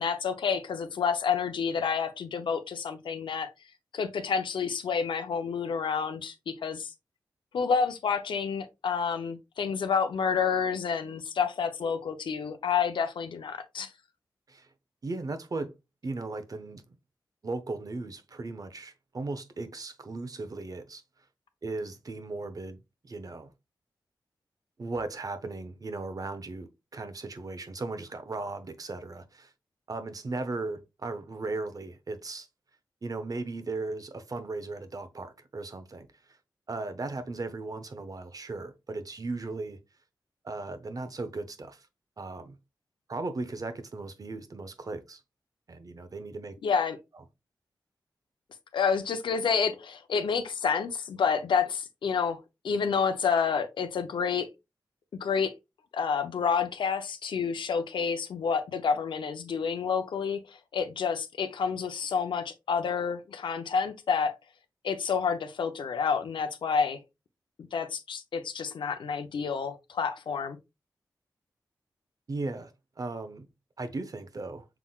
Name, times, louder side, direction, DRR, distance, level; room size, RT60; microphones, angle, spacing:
voice 1, 0.0-3.5 3.9-6.9 7.5-13.9 46.6-47.0 48.7-52.4 52.6-54.5 55.2-55.5 55.9-64.3 64.8-67.0 67.7-70.6, left 6 dB, 85° left, 0.6 m, -29 dB
voice 2, 15.0-15.7 16.0-16.8 17.4-21.0 21.6-22.8 23.0-23.5 24.8-29.5 29.9-32.5 33.0-36.1 36.7-39.8 40.4-41.9 42.2-42.6 43.1-45.2 45.7-46.6 72.3-72.7 73.0-73.5 73.8-74.6, right 3 dB, 50° right, 0.8 m, -37 dB
5.8 x 3.7 x 2.4 m
cardioid pair, 60°, 8 cm